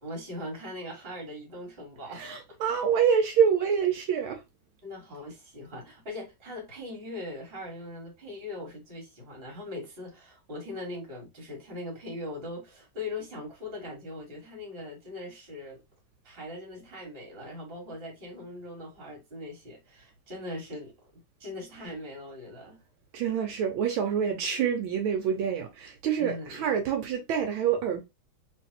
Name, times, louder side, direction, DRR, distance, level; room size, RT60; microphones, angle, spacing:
voice 1, 0.0-2.6 4.8-15.8 16.2-21.1 21.4-22.8 26.2-26.8, left 1 dB, 30° right, 1.6 m, -40 dB
voice 2, 2.2-4.4 23.1-28.1, right 7 dB, 75° right, 1.4 m, -26 dB
3.3 x 3.1 x 2.7 m
omnidirectional pair, 2.3 m